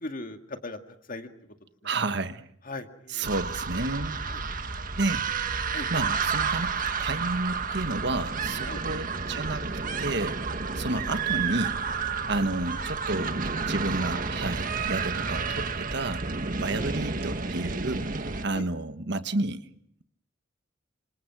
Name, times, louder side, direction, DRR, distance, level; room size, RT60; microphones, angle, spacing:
voice 1, 0.0-0.8 1.1-1.3 1.8-1.9 2.6-3.3 4.3-4.4 5.7-5.9 8.6-8.8 10.9-11.0 16.8-16.9 18.5-18.6, left 2 dB, 50° left, 6 dB, 2.1 m, -38 dB
voice 2, 1.8-2.5 3.1-4.2 5.0-5.6 5.9-9.7 10.0-10.4 10.7-11.8 12.3-13.4 13.7-16.2 16.6-18.1 18.4-19.6, right 2 dB, 65° right, 10 dB, 1.4 m, -31 dB
sound 1, 3.2-18.5, right 5 dB, 45° right, 1.7 m, -31 dB
27.5 x 26.5 x 6.1 m, 0.67 s
head